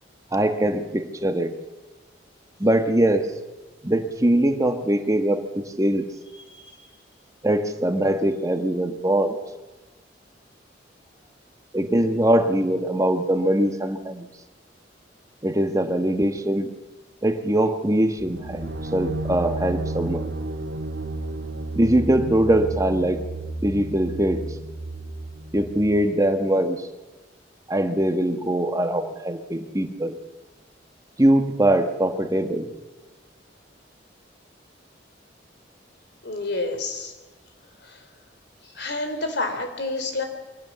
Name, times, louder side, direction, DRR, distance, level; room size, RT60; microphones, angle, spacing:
voice 1, 0.3-1.6 2.6-3.3 3.8-6.1 7.4-9.4 11.7-14.3 15.4-16.7 17.2-20.3 21.7-23.2 23.6-24.4 25.5-26.8 27.7-30.2 31.2-32.7, right 1 dB, 20° right, 7 dB, 1.5 m, -22 dB
voice 2, 6.3-6.8 36.2-37.1 37.8-38.1 38.6-40.2, left 2 dB, 65° left, 7 dB, 3.3 m, -29 dB
sound 1, 18.2-25.9, right 2 dB, 70° right, 1.8 m, -32 dB
23.5 x 17.0 x 7.0 m, 1.2 s
head